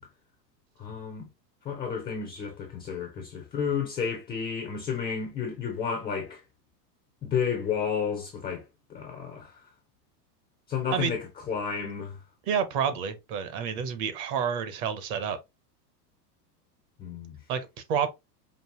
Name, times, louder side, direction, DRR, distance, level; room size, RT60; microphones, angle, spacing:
voice 1, 0.8-1.3 1.6-6.4 7.2-8.6 8.9-9.6 10.7-12.2 17.0-17.4, left 6 dB, 10° left, 0.3 m, -31 dB
voice 2, 12.5-15.4 17.5-18.1, right 7 dB, 40° right, 0.7 m, -29 dB
5.3 x 2.6 x 2.9 m
supercardioid pair, 145°, 49 cm